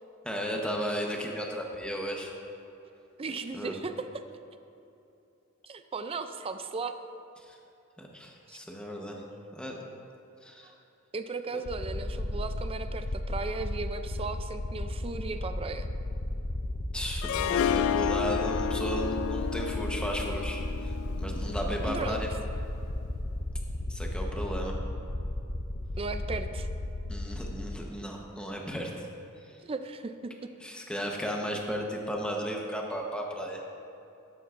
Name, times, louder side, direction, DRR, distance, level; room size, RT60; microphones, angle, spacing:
voice 1, 0.2-2.3 3.5-3.8 7.5-7.6 8.0-9.2 9.5-9.8 10.4-10.7 11.5-11.6 16.9-20.6 21.2-22.3 23.9-24.8 27.1-29.1 30.6-33.6, equal, 5° left, 0 dB, 1.0 m, -34 dB
voice 2, 3.2-4.2 5.7-6.9 8.5-8.6 10.6-10.7 11.1-15.9 21.9-22.2 26.0-26.7 29.6-30.3, right 4 dB, 25° right, 9 dB, 0.4 m, -36 dB
sound 1, 11.7-27.8, left 1 dB, 40° left, 0.6 m, -34 dB
Harp, 17.2-22.3, left 8 dB, 80° left, 0.4 m, -31 dB
12.5 x 11.0 x 2.5 m, 2.8 s
head